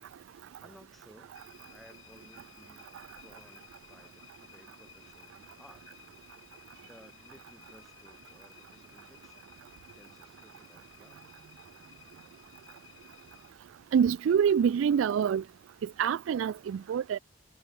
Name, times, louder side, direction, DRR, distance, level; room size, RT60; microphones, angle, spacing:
voice 1, 0.3-1.4 1.7-5.8 6.8-9.7 9.9-11.6, equal, ahead, 4.2 m, -59 dB
sound 1, 1.3-13.5, left 9 dB, 85° left, 6.4 m, -57 dB
voice 2, 13.9-15.4 15.8-17.2, right 7 dB, 80° right, 0.3 m, -26 dB
head